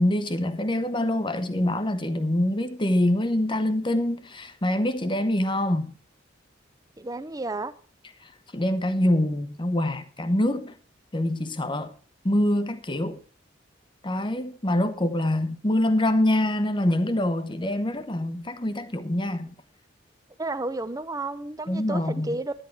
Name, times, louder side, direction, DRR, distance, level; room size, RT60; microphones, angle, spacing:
voice 1, 0.0-5.9 8.5-10.7 11.1-11.9 12.2-13.2 14.0-19.5 21.7-22.4, left 1 dB, 25° left, 0.9 m, -25 dB
voice 2, 7.0-7.7 20.4-22.5, right 2 dB, 20° right, 0.7 m, -31 dB
10.5 x 10.0 x 4.6 m
head